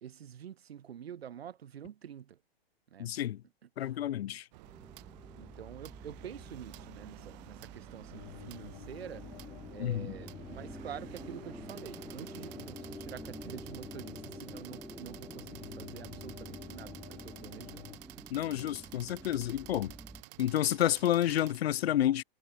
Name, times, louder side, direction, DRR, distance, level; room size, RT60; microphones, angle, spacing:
voice 1, 0.0-2.4 2.9-3.1 3.6-4.4 5.4-9.3 9.7-17.9 18.2-18.3, right 9 dB, 80° right, 1.7 m, -47 dB
voice 2, 3.0-3.4 3.8-4.4 9.8-10.1 18.3-19.9 20.4-22.2, left 12 dB, 90° left, 0.5 m, -30 dB
sound 1, 4.5-21.6, right 23 dB, 45° right, 2.7 m, -52 dB
sound 2, 4.6-20.2, right 1 dB, ahead, 2.9 m, -49 dB
sound 3, 8.1-18.0, left 18 dB, 50° left, 5.4 m, -51 dB
hypercardioid pair, 135°, 30 cm